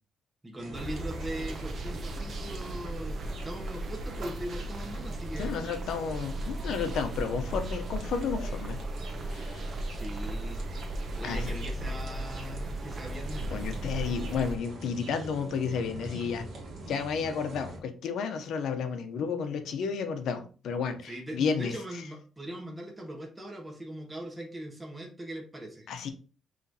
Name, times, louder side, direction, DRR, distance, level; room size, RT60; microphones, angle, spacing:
voice 1, 0.4-3.2 3.4-5.6 9.9-10.6 11.2-13.5 21.0-25.9, right 1 dB, 15° right, 0 dB, 1.3 m, -40 dB
sound 1, 0.6-17.8, right 2 dB, 60° right, 1.4 m, -44 dB
sound 2, 0.7-14.6, right 1 dB, 45° right, 0.7 m, -36 dB
voice 2, 5.4-8.8 9.3-9.7 11.2-11.5 13.5-16.4 16.9-21.8 25.9-26.1, left 6 dB, 80° left, 8 dB, 0.7 m, -32 dB
5.8 x 3.1 x 2.8 m, 0.38 s
cardioid pair, 120°, 0 cm